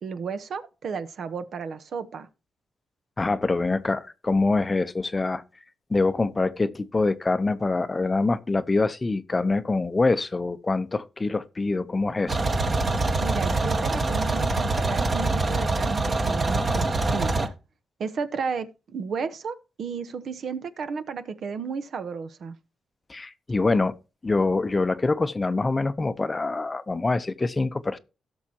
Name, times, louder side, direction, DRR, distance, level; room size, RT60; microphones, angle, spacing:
voice 1, 0.0-2.3 13.2-17.5 18.0-22.6, right 5 dB, 60° right, 1.0 m, -33 dB
voice 2, 3.2-5.4 5.9-12.4 23.1-23.9 24.2-28.0, left 3 dB, 25° left, 0.7 m, -25 dB
sound 1, 12.3-17.5, right 2 dB, 30° right, 1.3 m, -24 dB
17.0 x 6.3 x 2.9 m
cardioid pair, 105°, 0 cm